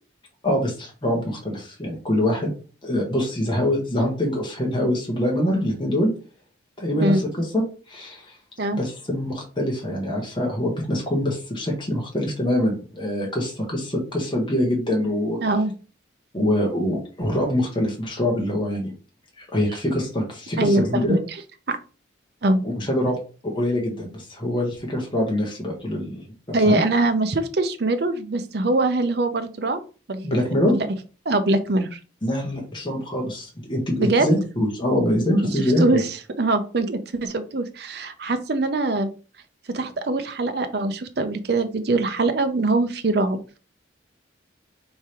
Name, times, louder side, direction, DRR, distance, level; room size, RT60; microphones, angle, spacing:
voice 1, 0.4-2.5 2.8-6.1 6.8-7.2 7.5-8.4 8.7-15.4 16.3-18.9 19.4-21.2 22.6-26.2 26.6-26.8 30.2-30.7 32.2-36.0, left 1 dB, 25° left, -1 dB, 1.2 m, -24 dB
voice 2, 15.4-15.7 20.6-21.2 21.7-21.8 22.4-22.6 26.5-29.8 30.1-30.4 30.7-30.9 31.3-32.0 34.0-34.3 35.5-39.1 39.7-43.4, right 2 dB, 55° right, 8 dB, 0.6 m, -23 dB
3.5 x 3.3 x 4.3 m, 0.35 s
head